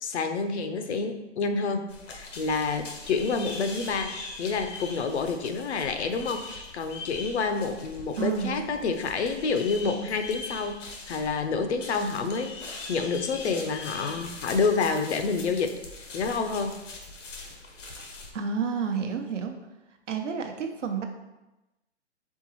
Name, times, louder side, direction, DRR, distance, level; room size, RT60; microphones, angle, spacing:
voice 1, 0.0-15.7 16.1-16.8, left 4 dB, 65° left, 7 dB, 0.6 m, -28 dB
sound 1, 1.9-18.3, left 3 dB, 90° left, 1.0 m, -42 dB
voice 2, 8.2-8.6 18.3-19.5 20.1-21.0, right 6 dB, 80° right, 5 dB, 0.8 m, -30 dB
4.5 x 3.7 x 2.9 m, 1.0 s
hypercardioid pair, 160°, 36 cm